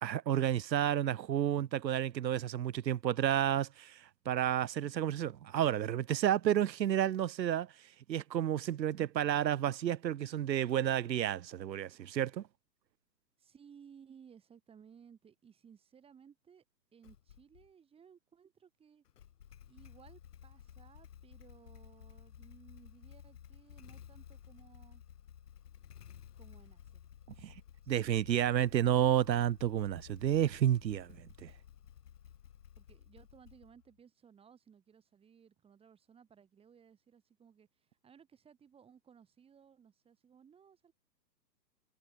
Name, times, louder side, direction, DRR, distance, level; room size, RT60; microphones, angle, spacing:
voice 1, 0.0-7.7 8.1-12.4 27.4-27.5 27.9-31.5, right 11 dB, 85° right, 0.8 m, -31 dB
voice 2, 13.4-16.6 16.9-19.0 19.7-25.0 26.1-27.1 27.8-28.2 32.8-40.9, right 7 dB, 10° right, 2.8 m, -60 dB
Motorcycle / Engine starting, 17.0-17.7 19.0-33.9, left 9 dB, 65° left, 1.7 m, -55 dB
hypercardioid pair, 135°, 50 cm